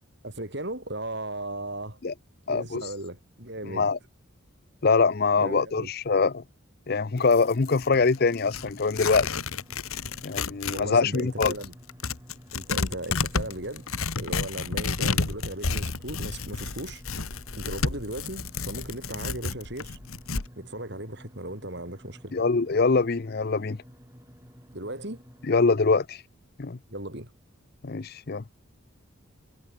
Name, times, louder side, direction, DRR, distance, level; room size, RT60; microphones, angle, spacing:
voice 1, 0.2-2.0 2.5-3.9 5.4-5.9 10.7-11.7 12.5-13.8 14.2-17.0 17.6-20.0 20.6-22.3 24.7-25.2 26.9-27.3, right 1 dB, 50° right, 5.6 m, -36 dB
voice 2, 2.5-2.9 3.6-4.0 4.8-6.4 6.9-9.3 10.2-11.5 22.3-23.8 25.5-26.2 26.6-26.8 27.8-28.4, left 4 dB, 45° left, 0.6 m, -23 dB
sound 1, 7.1-25.9, equal, 15° right, 6.6 m, -51 dB
Tearing, 7.2-10.9 11.1-20.5, left 4 dB, 80° left, 1.7 m, -31 dB
head